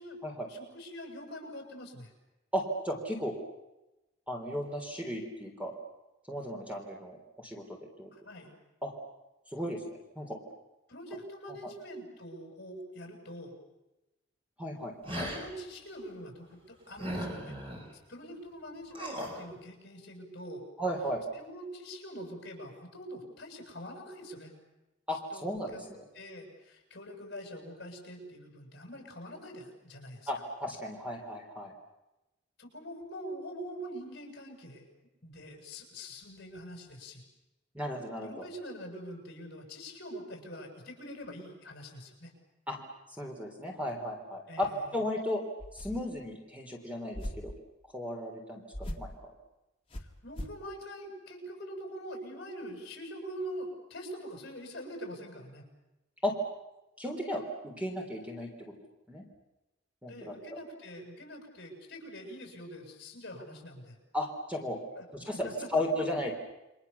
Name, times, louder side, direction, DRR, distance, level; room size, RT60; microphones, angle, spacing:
voice 1, 0.0-2.1 8.1-8.5 10.9-13.5 15.2-17.6 18.1-20.6 21.3-24.5 25.3-25.8 26.1-30.3 32.6-34.8 35.2-37.2 38.2-42.3 44.5-45.0 50.0-55.7 60.1-64.0 65.0-65.1 65.4-65.5, equal, 55° left, 3 dB, 7.5 m, -44 dB
voice 2, 2.5-3.4 4.3-5.7 6.3-8.1 8.8-8.9 9.5-10.4 14.6-14.9 20.8-21.2 25.1-26.0 30.3-31.7 37.7-38.5 42.7-42.8 43.1-45.4 45.7-47.5 47.9-49.1 56.2-56.3 57.0-58.7 59.1-59.2 60.0-60.6 64.1-64.8 65.1-66.3, left 1 dB, 5° right, 1 dB, 3.6 m, -35 dB
sound 1, 15.0-15.5 17.0-17.8 18.9-19.4, equal, 30° right, 5.9 m, -37 dB
sound 2, 45.6-46.2 47.1-47.6 48.7-49.2 49.9-50.6, equal, 30° left, 2.1 m, -40 dB
29.0 x 24.5 x 7.1 m, 0.98 s
head